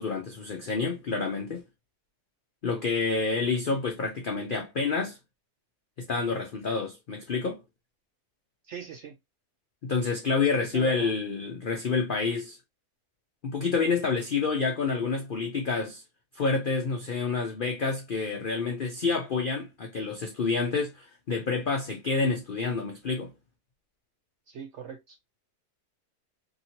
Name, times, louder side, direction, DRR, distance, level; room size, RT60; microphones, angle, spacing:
voice 1, 0.0-1.6 2.6-5.2 6.0-7.6 9.8-12.6 13.4-16.0 16.3-23.3, left 4 dB, 90° left, 0.4 m, -28 dB
voice 2, 8.7-9.2 10.5-11.2 24.5-25.2, right 8 dB, 75° right, 0.6 m, -40 dB
2.9 x 2.8 x 2.7 m
omnidirectional pair, 1.7 m